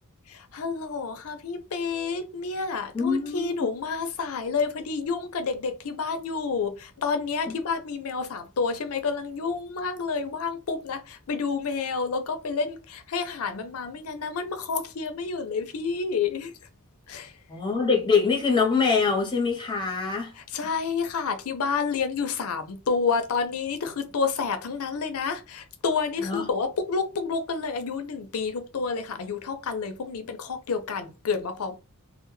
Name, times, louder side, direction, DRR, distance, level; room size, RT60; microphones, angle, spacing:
voice 1, 0.3-16.5 17.1-17.3 20.5-31.7, left 5 dB, 70° left, 0.5 m, -29 dB
voice 2, 2.9-3.7 7.5-7.6 17.5-20.3 26.2-26.5, left 5 dB, 20° left, 0.7 m, -24 dB
2.2 x 2.0 x 3.0 m
head